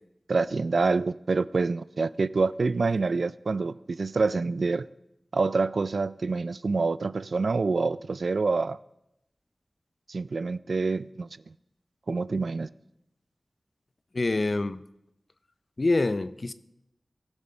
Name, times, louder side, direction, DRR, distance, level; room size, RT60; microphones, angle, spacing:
voice 1, 0.3-4.9 5.3-8.8 10.1-11.3 12.1-12.7, right 4 dB, 80° right, 0.3 m, -26 dB
voice 2, 14.1-14.8 15.8-16.5, left 2 dB, 50° left, 0.6 m, -25 dB
18.5 x 7.2 x 4.4 m
wide cardioid pair, 65°, 0 cm